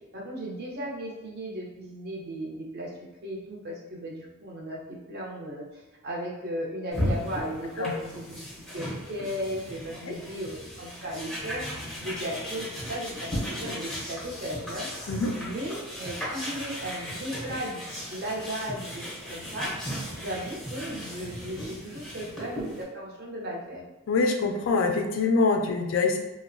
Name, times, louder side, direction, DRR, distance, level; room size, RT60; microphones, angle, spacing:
voice 1, 0.1-2.9 3.2-8.4 8.7-15.0 15.4-19.7 20.2-23.9, equal, 45° right, -3 dB, 0.6 m, -36 dB
sound 1, 6.9-22.8, equal, 5° left, 0.5 m, -36 dB
voice 2, 24.1-26.2, left 4 dB, 60° left, 4 dB, 0.3 m, -24 dB
2.8 x 2.0 x 2.5 m, 1.1 s
head